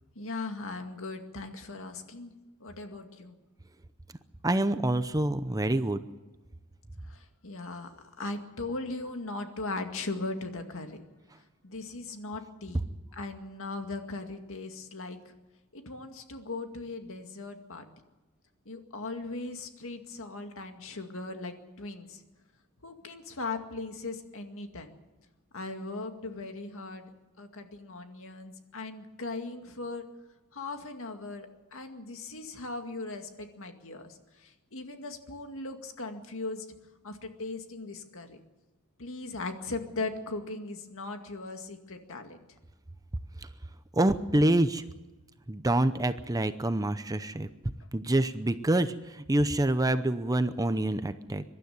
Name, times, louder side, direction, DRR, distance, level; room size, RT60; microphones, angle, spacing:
voice 1, 0.2-2.3 2.6-3.3 7.0-11.0 11.6-12.8 13.1-15.3 15.7-17.9 18.7-22.2 22.8-24.9 25.5-27.1 27.4-30.1 30.5-36.7 37.0-38.4 39.0-42.4, left 3 dB, 65° left, 5 dB, 2.2 m, -38 dB
voice 2, 4.4-6.0 43.9-44.8 45.5-47.5 47.9-51.4, right 1 dB, 15° right, 11 dB, 0.7 m, -26 dB
23.0 x 12.5 x 9.4 m, 1.1 s
head